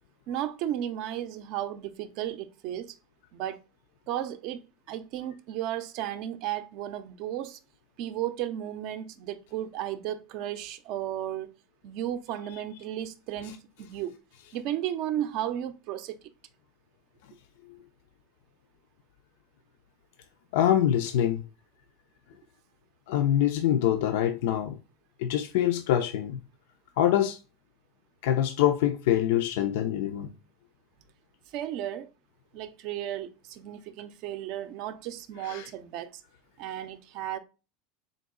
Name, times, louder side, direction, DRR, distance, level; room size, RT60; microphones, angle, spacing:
voice 1, 0.3-2.9 3.3-3.6 4.1-4.6 4.9-7.6 8.0-11.5 11.8-14.1 14.5-16.2 31.5-32.1 32.5-36.2 36.6-37.4, right 11 dB, 50° right, 0.5 m, -34 dB
voice 2, 20.5-21.4 23.1-24.8 25.2-26.4 27.0-27.4 28.2-30.3 35.4-35.7, left 11 dB, 70° left, 0.4 m, -25 dB
3.9 x 2.7 x 3.8 m
supercardioid pair, 160°, 0 cm